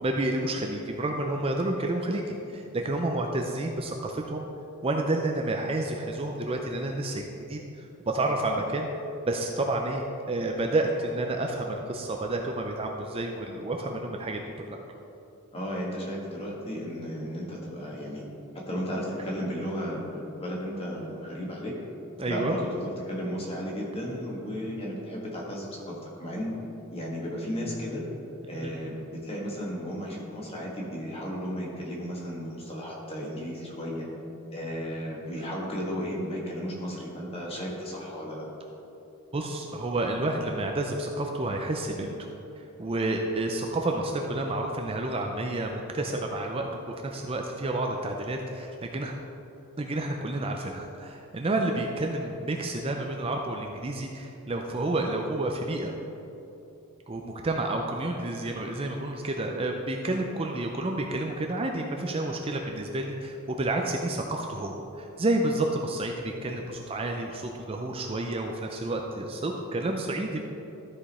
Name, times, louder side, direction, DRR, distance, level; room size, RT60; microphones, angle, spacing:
voice 1, 0.0-2.2 2.5-4.5 4.8-8.9 9.3-14.8 22.2-22.6 28.6-28.7 35.4-35.5 39.3-42.1 42.6-49.1 49.8-55.9 57.1-70.4, right 2 dB, 25° right, 2 dB, 0.5 m, -30 dB
voice 2, 15.5-18.3 18.5-21.7 22.2-26.5 26.9-28.0 28.5-34.1 34.5-38.5, equal, 25° left, -3 dB, 1.6 m, -34 dB
13.0 x 5.1 x 4.2 m, 2.9 s
head